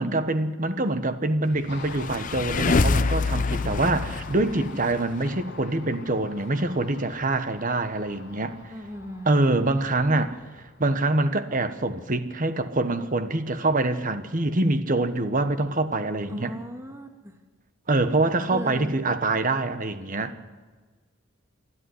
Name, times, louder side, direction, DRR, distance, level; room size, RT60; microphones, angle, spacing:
voice 1, 0.0-8.6 9.3-10.3 10.8-16.5 17.9-20.3, right 2 dB, 40° right, 1.2 m, -25 dB
Car passing by, 1.7-11.1, left 4 dB, 55° left, 1.3 m, -45 dB
sound 1, 1.7-5.3, left 3 dB, 40° left, 0.6 m, -25 dB
voice 2, 8.7-9.3 16.3-17.3 18.5-18.9, equal, 15° right, 1.9 m, -37 dB
27.0 x 11.0 x 9.7 m
head